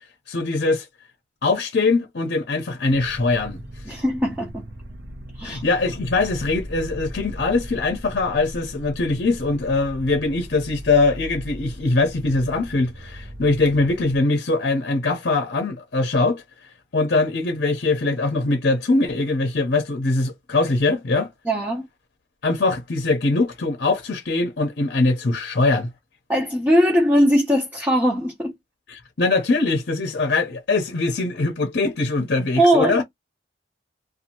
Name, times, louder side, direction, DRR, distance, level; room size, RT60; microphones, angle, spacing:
voice 1, 0.3-0.9 1.4-3.6 5.4-16.4 16.9-21.3 22.4-25.9 28.9-33.0, left 3 dB, 60° left, 0.7 m, -22 dB
sound 1, 2.9-14.2, equal, 60° right, 0.7 m, -38 dB
voice 2, 3.9-4.6 5.4-5.6 21.5-21.9 26.3-28.5 32.6-33.0, equal, 10° right, 0.6 m, -20 dB
2.6 x 2.3 x 2.8 m
head